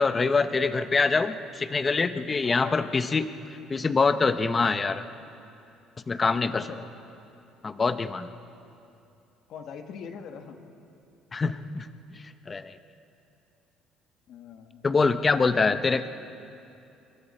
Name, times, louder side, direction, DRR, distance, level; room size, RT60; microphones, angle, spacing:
voice 1, 0.0-3.3 3.7-5.0 6.1-6.7 7.6-8.3 11.3-11.9 12.5-12.7 14.8-16.0, left 4 dB, 25° left, 11 dB, 0.8 m, -24 dB
voice 2, 2.4-2.9 6.4-6.9 9.5-10.6 14.3-14.8 15.3-16.0, left 7 dB, 60° left, 6 dB, 1.7 m, -42 dB
26.0 x 23.0 x 4.4 m, 2.7 s
cardioid pair, 135°, 0 cm